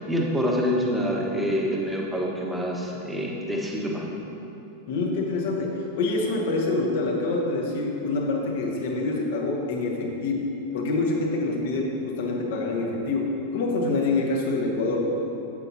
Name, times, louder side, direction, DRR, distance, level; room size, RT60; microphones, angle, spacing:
voice 1, 0.0-4.1, equal, 5° right, -2 dB, 1.3 m, -26 dB
voice 2, 4.9-10.4 10.7-15.2, left 3 dB, 55° left, 0 dB, 1.4 m, -26 dB
10.5 x 8.0 x 2.8 m, 2.8 s
figure-of-eight pair, 90°, 0 cm